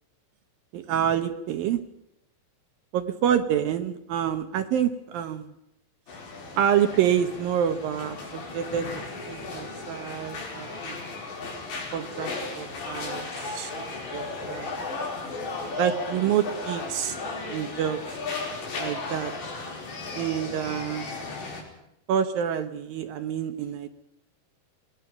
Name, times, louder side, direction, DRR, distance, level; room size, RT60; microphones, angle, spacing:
voice 1, 0.7-1.8 2.9-5.5 6.6-11.0 11.9-13.8 14.1-14.9 15.8-17.2 17.5-18.0 18.8-19.3 20.1-21.1 22.1-23.9, right 9 dB, 70° right, 9 dB, 2.4 m, -27 dB
sound 1, 6.1-21.6, left 3 dB, 85° left, 7.2 m, -35 dB
28.0 x 19.5 x 5.9 m, 0.83 s
omnidirectional pair, 4.9 m